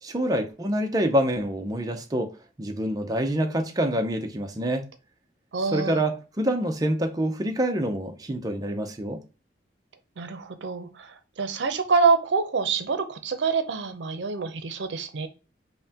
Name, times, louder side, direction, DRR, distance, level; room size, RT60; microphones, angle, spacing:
voice 1, 0.0-4.9 5.7-9.2, right 1 dB, 20° right, 0.5 m, -26 dB
voice 2, 5.5-6.0 10.2-15.3, right 5 dB, 85° right, 0.5 m, -26 dB
5.5 x 2.1 x 2.8 m
head